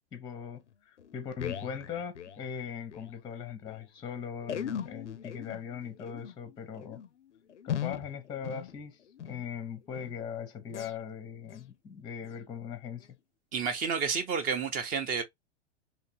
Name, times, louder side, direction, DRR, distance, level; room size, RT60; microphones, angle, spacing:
voice 1, 0.1-7.0 7.6-13.1, left 7 dB, 15° left, 0.7 m, -40 dB
sound 1, 0.6-0.7 1.0-3.1 3.4-3.5 3.7-3.8 4.4-9.5 9.9-10.2 10.7-11.0 11.4-11.7 12.2-12.4 13.0-13.1, left 9 dB, 85° left, 0.5 m, -40 dB
voice 2, 13.5-15.2, right 6 dB, 25° right, 0.6 m, -30 dB
3.4 x 2.8 x 2.7 m
figure-of-eight pair, 100°, 34 cm